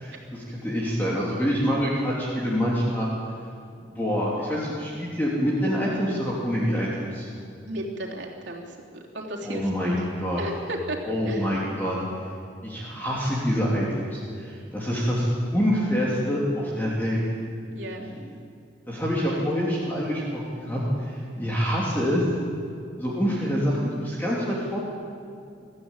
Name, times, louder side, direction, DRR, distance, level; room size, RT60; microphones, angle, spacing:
voice 1, 0.0-3.1 3.8-7.3 9.4-10.4 11.1-12.0 12.6-17.2 18.2-18.3 18.9-22.2 23.0-24.8, equal, 10° left, -6 dB, 3.1 m, -26 dB
voice 2, 7.6-10.0 10.4-11.5 17.7-18.1 19.3-19.4, right 1 dB, 70° right, -2 dB, 3.3 m, -34 dB
24.0 x 14.0 x 8.9 m, 2.5 s
head